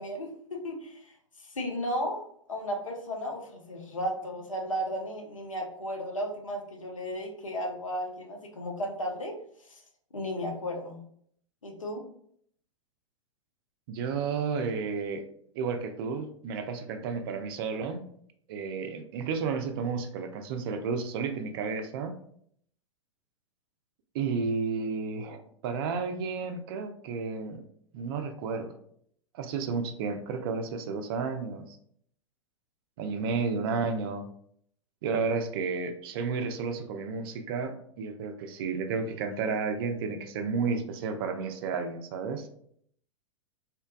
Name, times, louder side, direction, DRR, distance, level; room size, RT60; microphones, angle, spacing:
voice 1, 0.0-9.3 9.7-9.8 10.1-11.0 11.6-12.0, equal, 85° left, 1 dB, 0.6 m, -34 dB
voice 2, 13.9-15.3 15.5-18.1 18.5-22.2 24.1-27.6 27.9-28.8 29.3-31.8 33.0-34.3 35.0-42.5, right 5 dB, 45° right, 7 dB, 0.4 m, -32 dB
2.8 x 2.2 x 2.2 m, 0.65 s
figure-of-eight pair, 100°, 16 cm